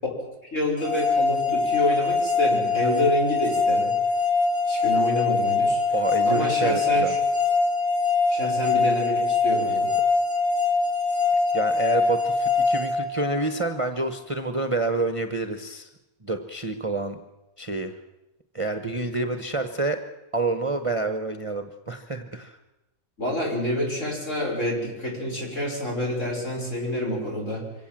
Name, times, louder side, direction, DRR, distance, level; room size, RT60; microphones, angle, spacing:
voice 1, 0.5-4.0 4.7-5.8 6.2-7.2 8.3-9.9 23.2-27.7, left 1 dB, 55° left, -1 dB, 6.3 m, -28 dB
sound 1, 0.8-13.8, left 4 dB, 10° left, 4.0 m, -23 dB
voice 2, 5.9-7.2 11.5-15.9 16.2-17.2 17.6-17.9 18.5-20.0 20.3-22.6, right 3 dB, 25° right, 7 dB, 1.1 m, -28 dB
25.0 x 17.5 x 7.6 m, 0.99 s
omnidirectional pair, 1.6 m